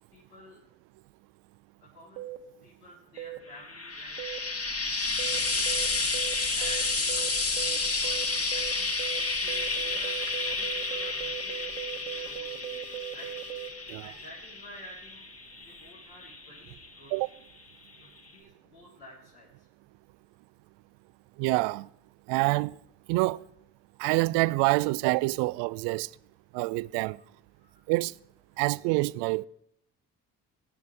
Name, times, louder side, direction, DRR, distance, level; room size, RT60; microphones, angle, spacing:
voice 1, 0.1-0.6 1.8-2.3 2.6-4.2 4.6-13.3 14.0-15.3 15.5-17.1 17.9-19.7 27.5-27.9 28.5-28.6, left 1 dB, 80° left, 3.8 m, -51 dB
sound 1, 2.2-2.4 3.2-3.4 4.2-4.4 5.2-5.4 5.7-5.9 6.1-6.3 6.6-6.8 7.1-7.3 7.6-7.8 8.0-8.3 8.5-8.7 9.0-9.2 9.5-13.7, right 13 dB, 80° right, 1.4 m, -39 dB
Frying (food), 3.6-17.0 17.9-18.0, left 3 dB, 30° left, 2.1 m, -31 dB
voice 2, 21.4-21.9 22.3-22.8 23.1-23.4 24.0-26.1 26.5-27.2 27.9-28.1 28.6-29.5, right 23 dB, 60° right, 0.5 m, -26 dB
22.0 x 10.5 x 3.4 m
figure-of-eight pair, 45°, 48 cm